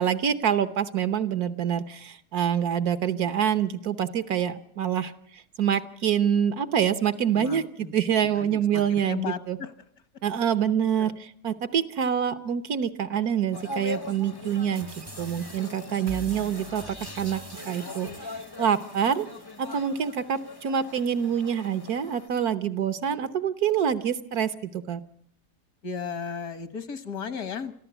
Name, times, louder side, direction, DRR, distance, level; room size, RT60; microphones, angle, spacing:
voice 1, 0.0-9.6 10.2-14.9 15.2-16.9 17.1-17.4 17.7-18.1 18.6-19.3 19.6-25.0, right 8 dB, 75° right, 11 dB, 1.5 m, -26 dB
voice 2, 7.3-7.9 8.4-9.7 11.0-11.2 25.8-27.7, left 6 dB, 75° left, 11 dB, 1.9 m, -35 dB
sound 1, 13.5-22.3, left 3 dB, 25° left, 0.6 m, -41 dB
sound 2, 14.7-19.8, right 2 dB, 25° right, 0.6 m, -45 dB
25.5 x 14.5 x 8.1 m, 0.67 s
omnidirectional pair, 1.6 m